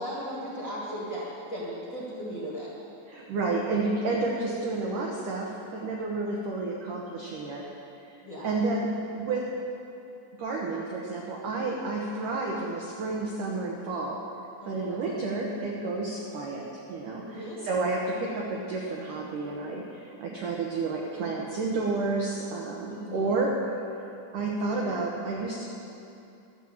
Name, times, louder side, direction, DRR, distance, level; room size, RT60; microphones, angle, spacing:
voice 1, 0.0-2.7 8.2-8.4 14.6-15.0 17.3-17.6 22.9-23.3, equal, 45° left, -7 dB, 1.4 m, -36 dB
voice 2, 3.1-7.6 8.4-9.5 10.4-14.2 14.7-23.5 24.3-25.6, right 3 dB, 90° right, -2 dB, 1.8 m, -30 dB
12.5 x 9.2 x 7.3 m, 2.7 s
omnidirectional pair, 5.4 m